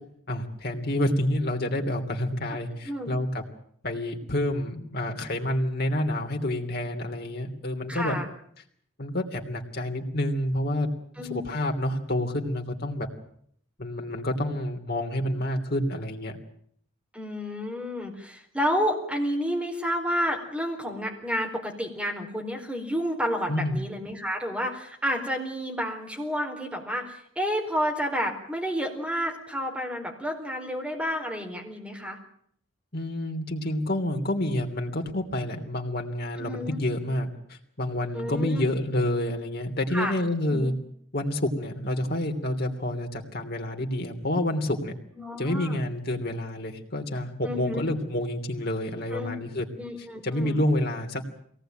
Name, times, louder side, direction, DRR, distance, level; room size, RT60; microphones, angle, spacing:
voice 1, 0.3-3.4 3.8-8.1 9.0-10.9 11.3-13.1 13.8-16.4 23.5-23.8 32.9-40.7 41.1-44.9 45.4-49.7 50.2-51.2, left 1 dB, 55° left, 3 dB, 3.1 m, -28 dB
voice 2, 7.9-8.3 11.2-11.4 17.1-32.2 36.4-36.8 38.1-38.7 39.9-40.1 40.5-40.7 45.2-45.8 47.4-47.8 49.1-49.3 49.8-50.6, equal, 5° right, 1 dB, 4.4 m, -30 dB
23.0 x 18.5 x 9.1 m, 0.66 s
head